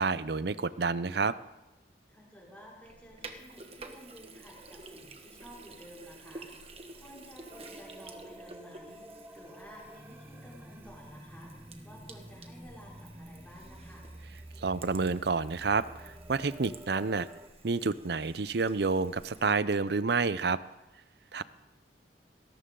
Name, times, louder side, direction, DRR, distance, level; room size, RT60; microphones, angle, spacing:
voice 1, 0.0-1.3 14.6-17.3 17.6-20.6 21.3-21.4, right 4 dB, 60° right, 16 dB, 0.6 m, -29 dB
voice 2, 2.1-6.5 6.9-9.0 9.3-11.5 11.8-14.1, equal, 10° left, -6 dB, 5.1 m, -52 dB
Sink (filling or washing), 2.8-19.5, right 3 dB, 35° right, 1.4 m, -51 dB
sound 1, 7.5-17.5, right 1 dB, 10° right, 0.7 m, -49 dB
20.0 x 17.5 x 3.8 m, 0.98 s
head